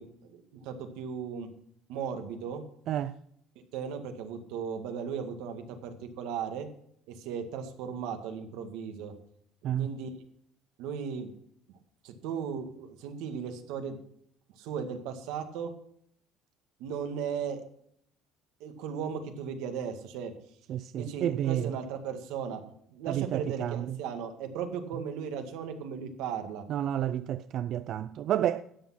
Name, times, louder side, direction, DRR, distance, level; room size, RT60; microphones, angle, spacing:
voice 1, 0.0-1.5 1.9-2.6 3.7-6.7 7.1-9.1 9.6-10.1 10.8-11.3 12.0-14.0 14.6-15.7 16.8-17.6 18.6-20.3 21.0-22.6 22.9-26.6, right 7 dB, 90° right, 1.9 m, -36 dB
voice 2, 20.7-21.8 23.1-24.0 26.7-28.6, right 11 dB, 50° right, 0.4 m, -30 dB
12.5 x 8.6 x 5.8 m
cardioid pair, 150°, 0 cm